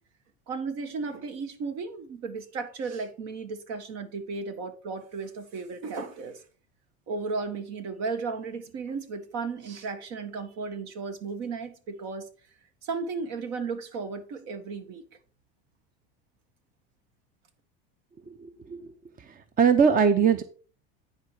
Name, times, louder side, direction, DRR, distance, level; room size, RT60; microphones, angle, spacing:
voice 1, 0.5-6.4 7.1-12.3 12.8-15.0, right 4 dB, 60° right, 1.7 m, -34 dB
voice 2, 18.4-18.8 19.6-20.4, right 6 dB, 30° right, 0.8 m, -20 dB
10.0 x 4.8 x 4.9 m
hypercardioid pair, 90°, 30 cm